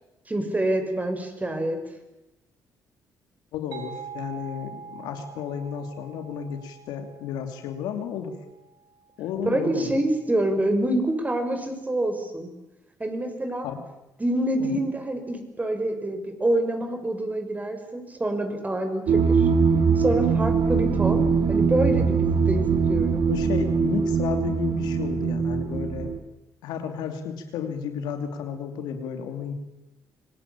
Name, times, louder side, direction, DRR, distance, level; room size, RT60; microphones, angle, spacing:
voice 1, 0.3-1.8 9.4-12.5 13.0-13.7 14.2-19.5 20.0-23.2, right 1 dB, 20° right, 6 dB, 6.1 m, -26 dB
voice 2, 3.5-8.4 9.2-10.0 13.6-13.8 14.6-14.8 23.3-26.2 26.6-29.5, left 7 dB, 85° left, 6 dB, 2.8 m, -32 dB
sound 1, 3.7-9.2, right 6 dB, 85° right, 3.5 m, -44 dB
sound 2, 19.1-26.2, right 5 dB, 70° right, 1.8 m, -22 dB
25.5 x 18.5 x 8.7 m, 0.93 s
supercardioid pair, 65°, 7 cm